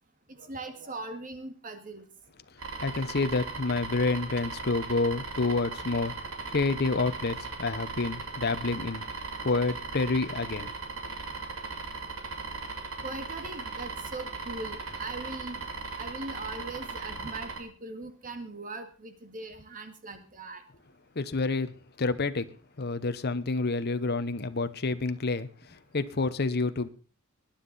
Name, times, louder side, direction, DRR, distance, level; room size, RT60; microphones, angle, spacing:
voice 1, 0.3-2.1 13.0-15.6 15.9-20.6, right 2 dB, 40° right, 1.9 m, -40 dB
sound 1, 2.6-17.6, right 4 dB, 80° right, 2.8 m, -38 dB
voice 2, 2.8-6.1 6.5-9.0 9.4-10.7 21.1-21.7 22.0-22.5 22.8-26.9, left 3 dB, 50° left, 0.9 m, -28 dB
20.5 x 10.0 x 4.1 m
head